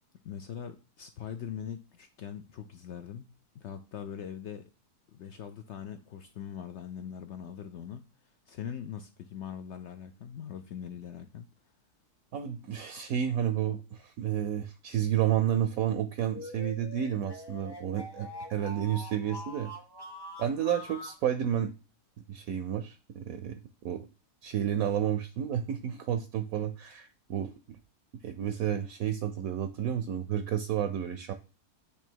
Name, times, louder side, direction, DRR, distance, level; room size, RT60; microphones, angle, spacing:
voice 1, 0.2-4.6 5.1-8.0 8.5-11.5, left 8 dB, 70° left, 8 dB, 0.6 m, -41 dB
voice 2, 12.3-19.7 20.4-21.7 22.3-23.6 23.8-24.0 24.4-27.5 28.2-31.3, right 10 dB, 70° right, 9 dB, 1.0 m, -31 dB
sound 1, 16.2-21.2, left 1 dB, 20° left, 0.8 m, -44 dB
8.2 x 3.0 x 4.5 m, 0.32 s
omnidirectional pair, 1.7 m